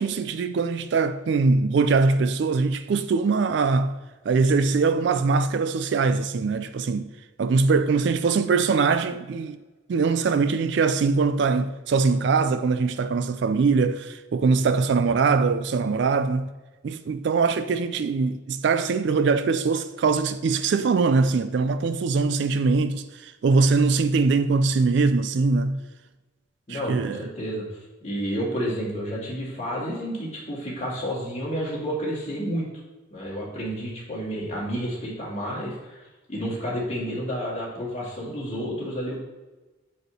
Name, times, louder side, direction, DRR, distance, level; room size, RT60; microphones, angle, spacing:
voice 1, 0.0-4.0 4.3-7.1 7.4-9.6 9.9-16.5 16.8-25.8 26.7-27.3, right 4 dB, 55° right, 0.3 m, -22 dB
voice 2, 26.7-32.7 33.1-39.2, equal, 35° left, 2.1 m, -30 dB
5.3 x 4.4 x 6.2 m
head